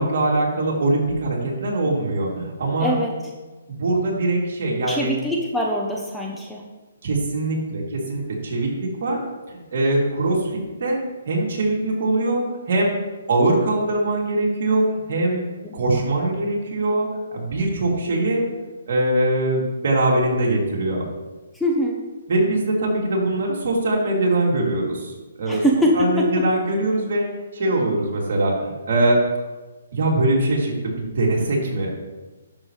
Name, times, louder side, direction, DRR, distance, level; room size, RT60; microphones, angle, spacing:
voice 1, 0.0-2.9 3.7-5.1 7.0-11.0 11.3-12.9 13.3-15.4 15.7-18.4 18.9-21.0 22.3-25.1 25.4-25.6 26.0-27.3 27.5-29.2 29.9-31.9, right 2 dB, 55° right, -3 dB, 3.1 m, -22 dB
voice 2, 2.8-3.1 4.9-6.6 15.6-16.0 21.5-22.0 25.5-26.4, equal, 5° left, -2 dB, 0.9 m, -23 dB
11.0 x 7.3 x 3.3 m, 1.2 s
hypercardioid pair, 155°, 0 cm